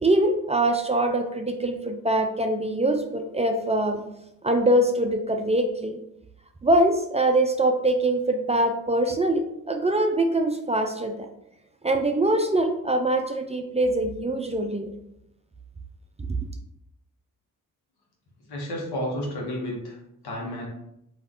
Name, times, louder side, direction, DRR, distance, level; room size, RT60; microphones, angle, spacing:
voice 1, 0.0-4.0 4.4-6.0 6.6-11.2 11.8-14.9, right 1 dB, 20° right, 4 dB, 0.3 m, -23 dB
voice 2, 18.5-20.0 20.2-20.7, equal, 85° left, -2 dB, 1.0 m, -31 dB
2.4 x 2.3 x 3.4 m, 0.81 s
supercardioid pair, 50°, 38 cm